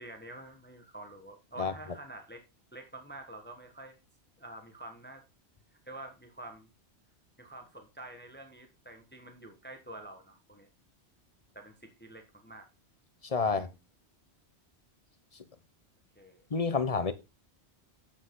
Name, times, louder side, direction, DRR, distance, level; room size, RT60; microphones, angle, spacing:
voice 1, 0.0-2.4 2.7-4.0 4.4-5.2 5.8-6.7 7.4-10.7 11.5-12.7 13.5-13.7 16.1-16.5, right 2 dB, 10° left, 1.2 m, -47 dB
voice 2, 13.2-13.7 16.5-17.1, left 4 dB, 35° left, 0.8 m, -28 dB
8.5 x 7.8 x 3.7 m
omnidirectional pair, 1.1 m